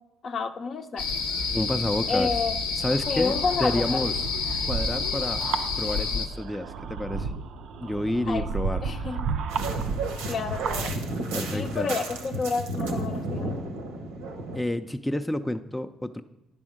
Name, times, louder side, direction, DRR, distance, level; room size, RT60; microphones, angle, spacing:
voice 1, 0.2-1.1 2.1-2.6 3.1-4.0 8.3-8.5 8.8-9.3 10.3-11.0 11.5-13.6, left 4 dB, 50° left, 7 dB, 0.6 m, -30 dB
sound 1, 1.0-6.3, left 5 dB, 90° left, 0.7 m, -29 dB
voice 2, 1.5-2.3 2.8-4.1 4.6-5.4 5.8-7.3 7.8-8.8 11.3-11.9 14.5-16.2, left 1 dB, 10° left, 7 dB, 0.4 m, -29 dB
sound 2, 2.8-10.9, right 5 dB, 70° right, 0.4 m, -33 dB
sound 3, 9.5-14.6, right 2 dB, 90° right, 0.8 m, -32 dB
10.0 x 3.5 x 6.4 m, 0.96 s
hypercardioid pair, 60°, 0 cm